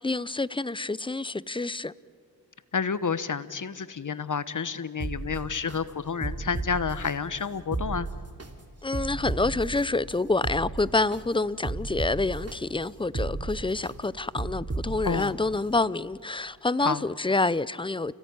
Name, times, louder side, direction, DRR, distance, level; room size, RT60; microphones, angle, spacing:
voice 1, 0.0-1.9 8.8-18.1, left 3 dB, 15° left, 0.6 m, -27 dB
voice 2, 2.7-8.1 15.0-15.4 16.8-17.0, left 5 dB, 50° left, 1.1 m, -30 dB
sound 1, 5.0-5.8 6.2-7.1 7.6-8.5 8.9-9.8 10.3-11.2 11.6-12.5 13.0-13.9 14.4-15.3 15.7-15.8, right 3 dB, 35° right, 2.8 m, -33 dB
29.5 x 16.5 x 9.5 m
cardioid pair, 55°, 40 cm